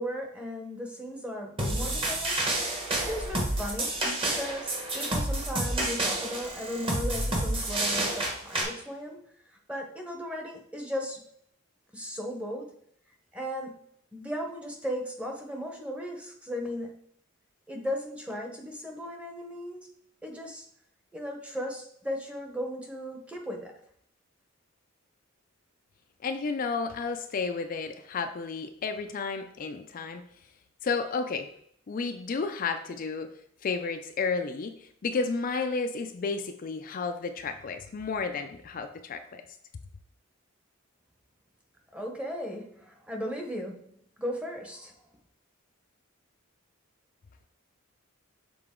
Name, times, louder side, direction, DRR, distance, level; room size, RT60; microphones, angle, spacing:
voice 1, 0.0-2.4 2.8-9.2 9.7-11.2 11.9-12.8 13.3-13.8 14.1-16.9 17.7-19.9 20.2-20.6 21.1-23.7 41.9-43.9 44.2-44.9, equal, 5° right, 2 dB, 0.9 m, -36 dB
sound 1, 1.6-8.6, right 1 dB, 25° right, 1.2 m, -29 dB
voice 2, 26.2-30.2 30.8-31.5 31.9-33.3 33.6-39.4, left 4 dB, 45° left, 7 dB, 0.4 m, -32 dB
6.7 x 3.9 x 3.7 m, 0.67 s
head